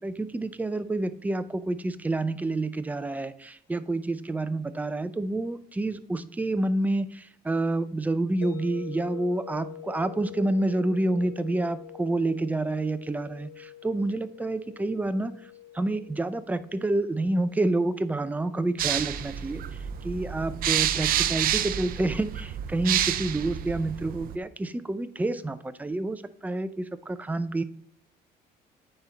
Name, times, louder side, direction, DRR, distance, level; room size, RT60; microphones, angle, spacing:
voice 1, 0.0-15.3 15.7-19.6 20.0-27.6, right 2 dB, 10° right, 11 dB, 0.5 m, -28 dB
sound 1, 8.4-23.3, left 13 dB, 85° left, 2.7 m, -47 dB
sound 2, 18.8-24.4, right 11 dB, 60° right, 0.5 m, -29 dB
9.3 x 4.5 x 4.0 m, 0.65 s
cardioid pair, 110°, 17 cm